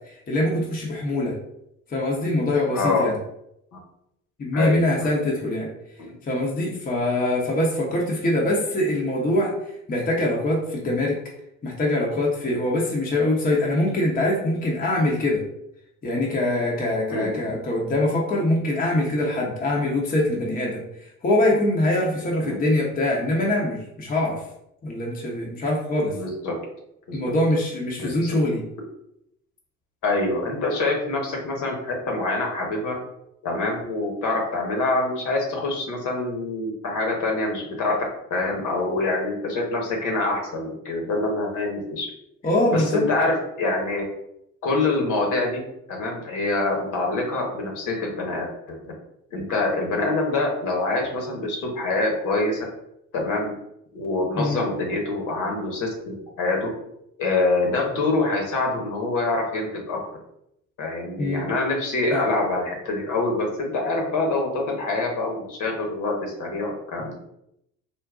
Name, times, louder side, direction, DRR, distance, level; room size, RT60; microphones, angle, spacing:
voice 1, 0.1-1.4 1.9-3.1 4.4-5.7 6.2-11.2 11.6-15.4 16.0-24.4 24.8-26.2 27.1-28.6 42.4-43.1 54.4-54.6 61.2-61.4 62.1-62.2, left 1 dB, 20° left, -2 dB, 0.7 m, -23 dB
voice 2, 2.7-3.0 3.7-3.8 4.5-5.1 6.1-6.2 17.1-17.5 22.4-22.6 26.1-26.6 27.1-27.2 28.0-28.3 30.0-32.9 33.4-38.0 38.3-42.1 42.7-44.0 44.6-45.6 45.9-48.9 49.3-52.6 53.1-53.5 53.9-56.7 57.2-60.0 60.8-67.1, left 2 dB, 50° left, 0 dB, 1.1 m, -25 dB
3.8 x 2.1 x 2.4 m, 0.79 s
figure-of-eight pair, 60°, 41 cm